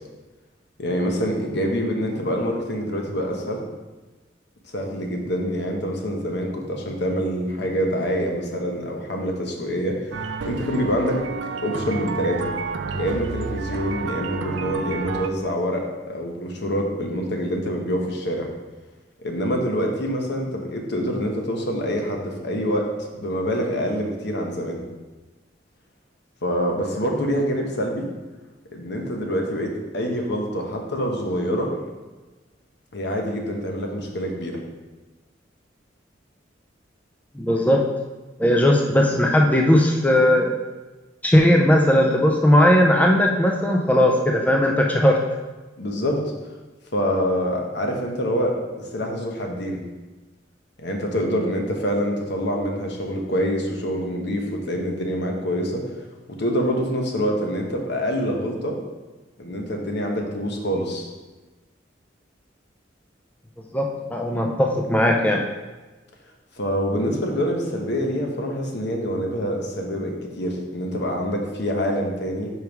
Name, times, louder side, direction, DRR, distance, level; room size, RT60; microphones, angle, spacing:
voice 1, 0.8-3.6 4.7-10.1 10.4-11.2 11.6-12.5 12.9-18.5 19.2-22.9 23.2-24.8 26.4-28.1 28.7-31.7 32.9-34.6 45.8-46.2 46.9-49.8 50.8-55.8 56.3-58.8 59.4-61.1 66.6-72.5, equal, 65° left, 1 dB, 1.0 m, -26 dB
sound 1, 10.1-15.3, right 4 dB, 90° right, 0.4 m, -30 dB
voice 2, 37.4-37.8 38.4-40.5 41.2-45.2 63.7-65.4, left 1 dB, 10° left, 1 dB, 0.4 m, -18 dB
5.2 x 4.6 x 4.6 m, 1.2 s
head